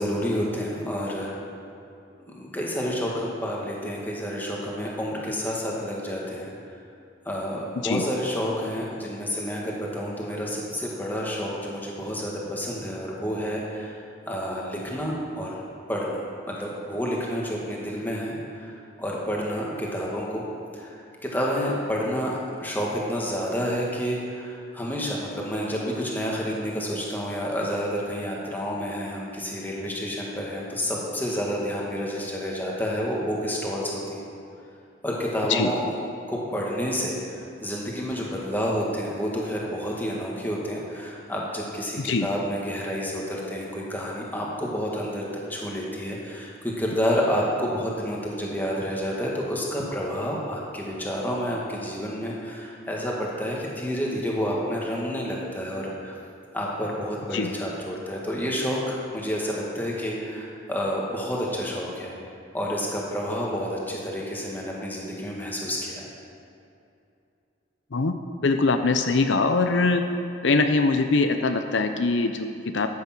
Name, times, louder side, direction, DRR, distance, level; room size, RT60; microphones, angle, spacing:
voice 1, 0.0-1.3 2.3-6.5 7.3-13.9 14.3-15.5 15.9-20.4 20.7-34.2 35.0-35.8 36.3-56.2 56.5-62.2 62.5-66.1, equal, 10° left, -3 dB, 1.9 m, -29 dB
voice 2, 42.0-42.3 57.3-57.5 67.9-68.1 68.4-70.1 70.4-72.9, left 3 dB, 70° left, 7 dB, 0.6 m, -22 dB
13.0 x 8.6 x 6.1 m, 2.6 s
head